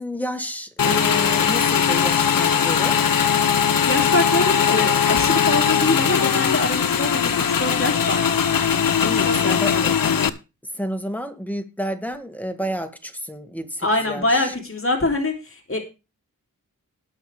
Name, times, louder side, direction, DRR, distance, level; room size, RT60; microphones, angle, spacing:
voice 1, 0.0-3.0 9.0-10.0 10.7-14.5, equal, 5° left, 7 dB, 2.0 m, -30 dB
Motorcycle / Engine, 0.8-10.3, left 7 dB, 80° left, 0.8 m, -20 dB
voice 2, 3.8-8.2 9.2-10.2 13.8-15.8, left 2 dB, 40° left, 2 dB, 3.0 m, -24 dB
19.0 x 6.3 x 3.4 m, 0.28 s
wide cardioid pair, 50°, 34 cm